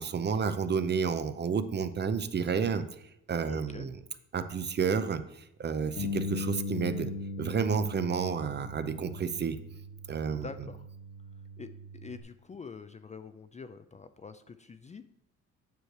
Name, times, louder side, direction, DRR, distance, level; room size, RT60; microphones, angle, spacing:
voice 1, 0.0-2.9 3.3-4.0 4.3-5.2 5.6-7.1 7.4-9.6 10.1-10.5, right 6 dB, 35° right, 11 dB, 0.6 m, -30 dB
voice 2, 3.4-3.9 10.4-10.9 11.6-11.7 12.0-15.0, left 5 dB, 25° left, 10 dB, 0.4 m, -45 dB
Bass guitar, 6.0-12.2, left 2 dB, 90° left, 1.3 m, -39 dB
9.1 x 3.2 x 6.6 m, 0.78 s
cardioid pair, 90°, 30 cm